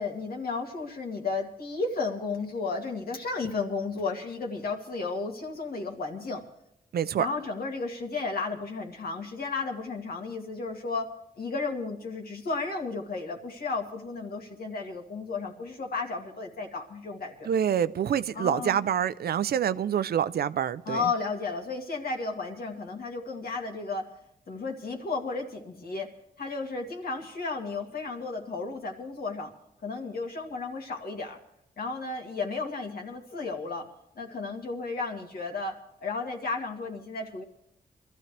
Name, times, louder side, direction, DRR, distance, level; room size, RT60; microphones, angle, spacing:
voice 1, 0.0-6.4 7.2-11.1 11.4-17.5 18.3-18.8 20.9-24.1 24.5-26.1 26.4-29.5 29.8-31.4 31.8-33.9 34.2-37.4, left 4 dB, 70° left, 2.4 m, -33 dB
voice 2, 6.9-7.3 17.5-21.0, right 9 dB, 80° right, 0.5 m, -26 dB
23.5 x 13.5 x 3.4 m
cardioid pair, 80°, 16 cm